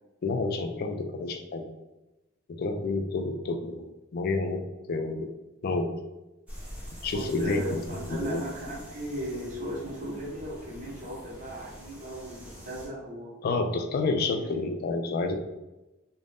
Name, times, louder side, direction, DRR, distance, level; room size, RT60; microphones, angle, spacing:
voice 1, 0.2-1.7 2.5-3.8 4.1-4.6 4.9-5.3 5.6-5.9 7.0-7.6 8.1-8.4 13.4-15.3, left 3 dB, 50° left, 6 dB, 0.3 m, -29 dB
sound 1, 6.5-12.9, equal, 5° right, 0.7 m, -45 dB
voice 2, 7.1-13.3 14.2-14.4, equal, 40° right, -6 dB, 1.0 m, -36 dB
2.5 x 2.1 x 3.3 m, 1.0 s
head